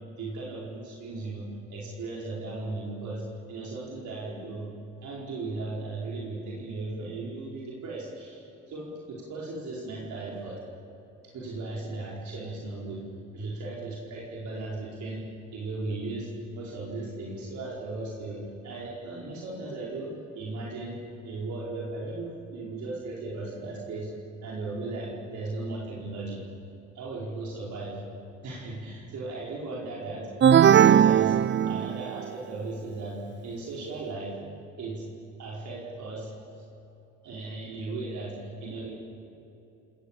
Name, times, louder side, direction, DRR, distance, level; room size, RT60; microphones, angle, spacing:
voice 1, 0.2-4.7 5.0-10.6 11.3-13.0 13.3-16.3 16.5-21.0 21.2-24.2 24.4-26.4 26.9-28.0 28.4-30.3 30.5-34.3 34.8-35.1 35.4-36.4 37.2-38.9, right 2 dB, 70° right, -4 dB, 5.0 m, -36 dB
sound 1, 30.4-32.2, right 9 dB, 40° right, 0.5 m, -18 dB
29.5 x 19.5 x 7.5 m, 3.0 s
cardioid pair, 90°, 30 cm